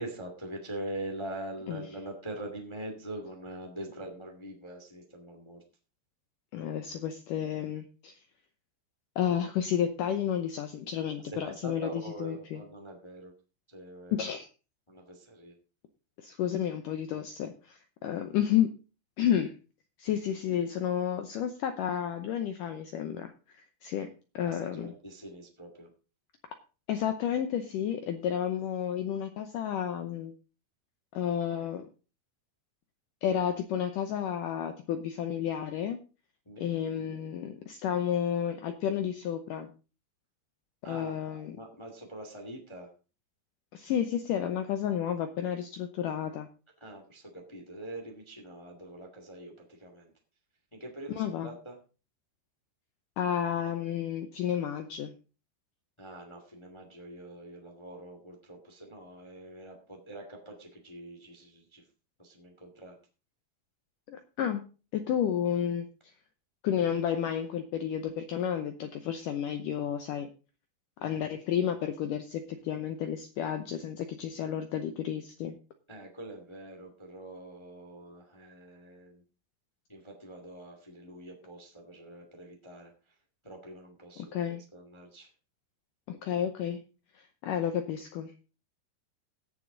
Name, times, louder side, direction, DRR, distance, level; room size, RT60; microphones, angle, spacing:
voice 1, 0.0-5.6 11.3-13.3 13.7-14.2 14.9-15.5 24.5-25.9 36.4-36.7 40.8-42.9 46.8-50.1 50.7-51.8 56.0-61.8 62.2-62.9 75.9-79.2 79.9-82.9 83.4-85.3, right 1 dB, 50° left, 3 dB, 0.3 m, -44 dB
voice 2, 6.5-8.1 9.2-12.6 14.1-14.5 16.2-18.7 19.2-19.5 20.0-24.1 24.3-24.9 26.9-30.3 31.1-31.9 33.2-36.0 36.6-39.7 40.8-41.6 43.7-46.5 51.1-51.5 53.2-55.1 64.1-64.6 64.9-65.9 66.6-70.3 71.0-75.6 84.3-84.6 86.1-86.8 87.1-88.4, left 9 dB, 85° left, 8 dB, 1.8 m, -31 dB
17.5 x 7.2 x 3.9 m, 0.33 s
omnidirectional pair, 5.0 m